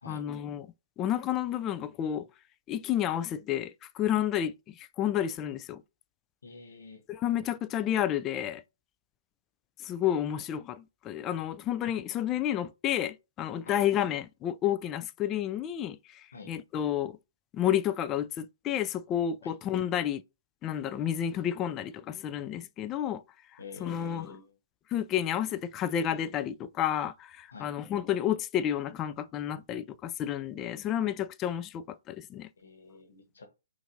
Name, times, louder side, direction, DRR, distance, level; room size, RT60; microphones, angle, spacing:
voice 1, 0.1-0.7 1.0-2.3 2.7-5.8 7.2-8.6 9.8-17.2 17.5-20.2 20.6-23.2 23.8-24.4 24.9-32.5, left 10 dB, 25° left, 0.3 m, -31 dB
voice 2, 6.4-7.0 13.7-13.8 16.3-16.5 19.4-19.5 23.6-24.5 27.5-27.7 32.6-33.5, left 4 dB, 75° left, 1.2 m, -47 dB
5.5 x 2.6 x 2.7 m
hypercardioid pair, 130°, 0 cm